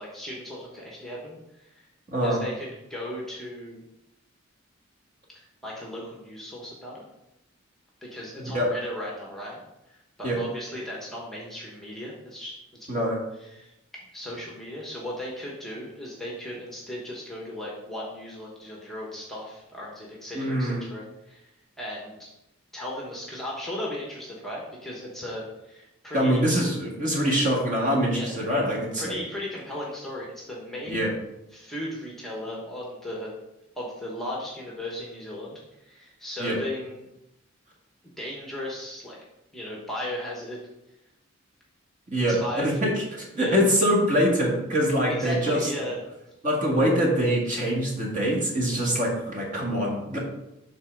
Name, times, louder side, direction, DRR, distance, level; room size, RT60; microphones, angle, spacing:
voice 1, 0.0-1.8 2.2-3.8 5.3-7.0 8.0-12.5 12.9-13.1 13.4-13.7 14.1-21.5 21.8-22.3 22.7-26.4 28.1-28.3 29.0-31.1 31.5-33.3 33.8-37.1 38.2-39.2 39.5-40.6 42.3-43.0 43.3-43.6 45.1-46.0, left 1 dB, ahead, -4 dB, 1.0 m, -36 dB
voice 2, 2.1-2.4 8.5-8.7 10.2-10.4 12.9-13.2 20.3-20.8 26.1-29.1 30.9-31.1 36.4-36.6 42.1-45.7 46.4-50.2, equal, 35° right, -2 dB, 1.7 m, -24 dB
5.6 x 3.9 x 6.0 m, 0.90 s
head